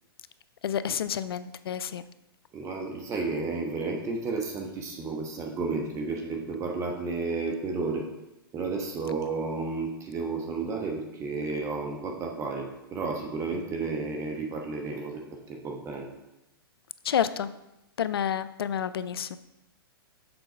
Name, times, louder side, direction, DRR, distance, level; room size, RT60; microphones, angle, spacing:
voice 1, 0.6-2.0 17.0-17.5 18.0-19.4, left 9 dB, 75° left, 15 dB, 0.4 m, -29 dB
voice 2, 2.5-8.1 8.5-15.2 15.5-16.1, right 4 dB, 25° right, 1 dB, 1.0 m, -32 dB
6.9 x 4.0 x 5.0 m, 0.93 s
hypercardioid pair, 115°, 13 cm